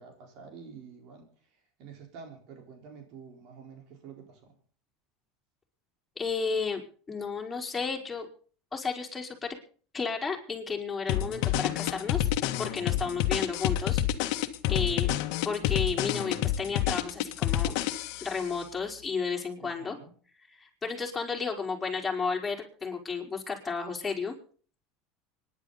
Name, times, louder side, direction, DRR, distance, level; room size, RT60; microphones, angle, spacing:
voice 1, 0.0-4.6 12.9-13.3 14.7-15.0 19.6-20.1, right 6 dB, 60° right, 3 dB, 4.4 m, -49 dB
voice 2, 6.2-6.8 7.1-8.3 8.7-9.6 9.9-12.3 12.6-14.0 14.7-15.1 15.4-17.7 18.2-20.0 20.6-24.4, left 5 dB, 15° left, 0 dB, 4.6 m, -32 dB
sound 1, 11.1-18.4, left 12 dB, 65° left, 1.5 m, -28 dB
25.0 x 11.0 x 4.1 m, 0.42 s
supercardioid pair, 120°, 0 cm